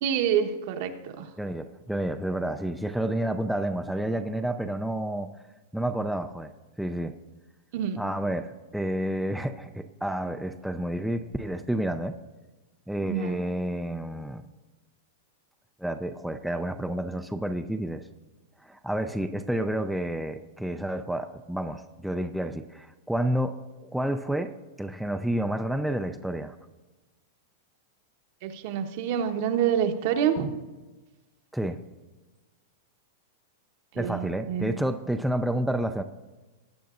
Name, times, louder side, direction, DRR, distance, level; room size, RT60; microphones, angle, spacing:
voice 1, 0.0-1.3 7.7-8.0 13.0-13.4 28.4-30.5 33.9-34.7, right 8 dB, 55° right, 6 dB, 1.0 m, -27 dB
voice 2, 1.4-5.3 5.7-6.5 6.8-7.2 8.0-12.1 12.9-14.4 15.8-18.0 18.6-26.6 31.5-31.8 34.0-36.0, right 1 dB, ahead, 6 dB, 0.4 m, -30 dB
19.0 x 9.2 x 2.5 m, 1.2 s
hypercardioid pair, 135°, 0 cm